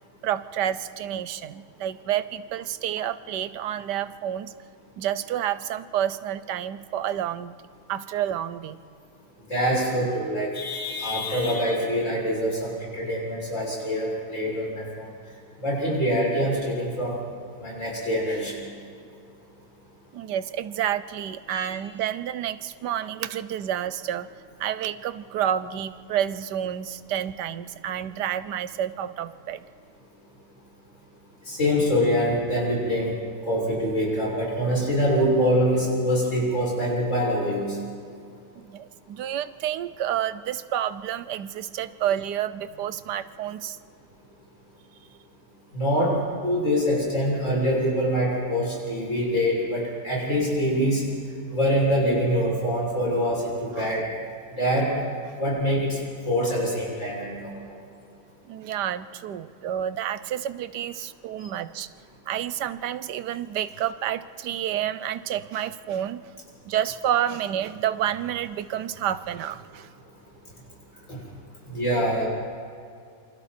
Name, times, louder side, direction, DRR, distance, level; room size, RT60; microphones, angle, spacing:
voice 1, 0.2-4.5 5.0-7.5 7.9-8.8 20.1-24.3 24.6-29.6 38.6-43.8 53.7-54.0 58.5-61.9 62.3-66.3 66.6-69.9, right 10 dB, 85° right, 14 dB, 1.4 m, -29 dB
voice 2, 9.5-15.1 15.6-17.2 17.6-18.6 21.5-21.7 31.5-33.1 33.4-37.8 45.7-46.2 46.4-51.0 51.5-54.1 54.6-54.9 55.4-56.0 56.3-57.5 71.1-71.2 71.7-72.3, equal, 45° left, -4 dB, 7.1 m, -24 dB
27.5 x 26.0 x 4.4 m, 2.3 s
omnidirectional pair, 1.8 m